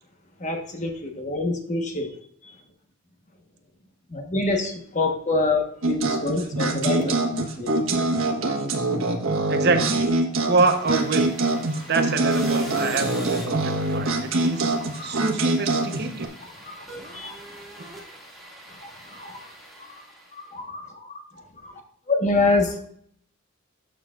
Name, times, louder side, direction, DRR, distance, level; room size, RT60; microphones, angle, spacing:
voice 1, 0.4-2.1 2.4-2.6 4.1-7.7 11.7-11.9 14.5-15.3 16.4-17.4 17.8-17.9 18.7-19.5 20.3-21.8 22.1-22.8, left 2 dB, 35° left, 3 dB, 1.2 m, -27 dB
sound 1, 5.8-16.3, right 2 dB, 75° right, 1.4 m, -24 dB
voice 2, 9.5-10.0 10.5-11.3 11.9-14.7 15.0-16.3, right 3 dB, 50° right, 6 dB, 0.9 m, -25 dB
sound 2, 10.3-20.5, right 1 dB, ahead, 2.1 m, -43 dB
12.0 x 6.7 x 2.4 m, 0.63 s
head